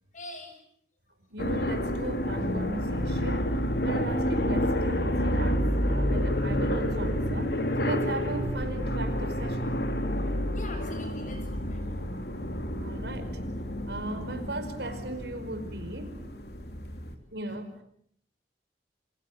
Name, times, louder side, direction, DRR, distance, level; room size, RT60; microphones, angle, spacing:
voice 1, 0.1-0.6 1.1-1.2 10.1-10.2 10.5-12.2 16.9-17.1 17.5-17.6, left 1 dB, 45° left, 7 dB, 7.5 m, -46 dB
voice 2, 1.3-9.6 12.8-13.4 13.9-16.2 17.3-17.7, right 1 dB, 75° right, 8 dB, 5.2 m, -37 dB
sound 1, 1.4-17.1, equal, 65° left, 3.3 m, -29 dB
28.5 x 27.0 x 7.7 m, 0.67 s
head